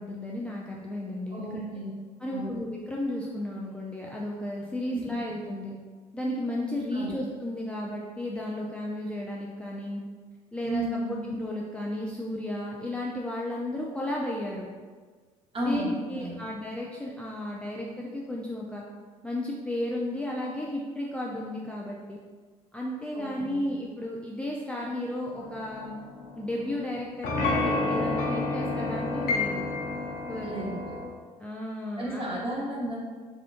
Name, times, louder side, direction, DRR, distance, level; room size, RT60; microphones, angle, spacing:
voice 1, 0.0-1.6 2.2-5.7 6.1-10.0 10.5-10.8 11.3-14.7 15.6-18.8 19.2-22.2 22.7-26.0 26.4-29.6 30.3-30.7 31.4-32.2, left 1 dB, 5° left, -4 dB, 0.4 m, -33 dB
voice 2, 1.3-1.9 2.3-2.5 4.9-5.0 6.9-7.1 10.6-11.2 15.5-16.4 23.1-23.7 30.4-31.0 32.0-33.0, right 1 dB, 30° right, -4 dB, 1.1 m, -33 dB
sound 1, 25.3-26.8 27.2-31.1, left 3 dB, 60° left, 0.7 m, -30 dB
3.6 x 2.4 x 2.5 m, 1.5 s
hypercardioid pair, 60°, 17 cm